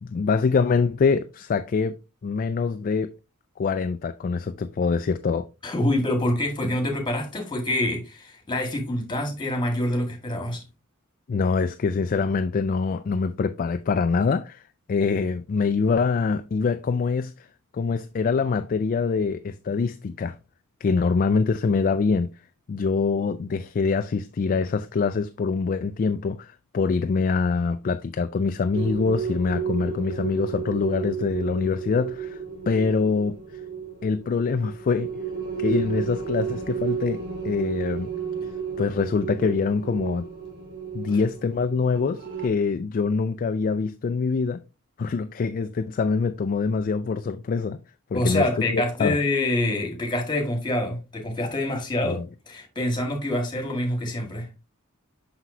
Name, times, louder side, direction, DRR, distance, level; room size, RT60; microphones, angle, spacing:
voice 1, 0.0-2.0 2.2-3.1 3.6-5.5 11.3-14.6 14.9-17.5 17.7-20.4 20.8-22.3 22.7-32.4 32.7-33.4 34.0-35.1 35.6-38.1 38.8-40.3 40.9-44.6 45.0-47.8 48.1-48.5 48.7-49.2 52.0-52.2, left 4 dB, 40° left, 0.3 m, -24 dB
voice 2, 5.6-10.6 48.1-54.5, left 1 dB, 20° left, 1.8 m, -26 dB
sound 1, 28.7-42.5, right 7 dB, 55° right, 2.5 m, -33 dB
5.9 x 5.8 x 2.7 m
head